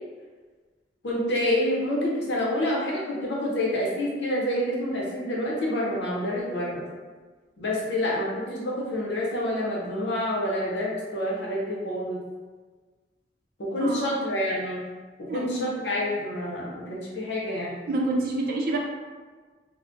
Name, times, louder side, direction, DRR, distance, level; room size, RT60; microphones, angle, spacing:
voice 1, 1.0-6.9 7.6-12.2 13.6-14.8 15.2-17.8, left 1 dB, 85° left, -4 dB, 0.7 m, -28 dB
voice 2, 13.8-14.1 15.3-15.7 17.9-18.8, right 2 dB, 55° right, -1 dB, 0.5 m, -28 dB
3.7 x 2.1 x 2.5 m, 1.4 s
head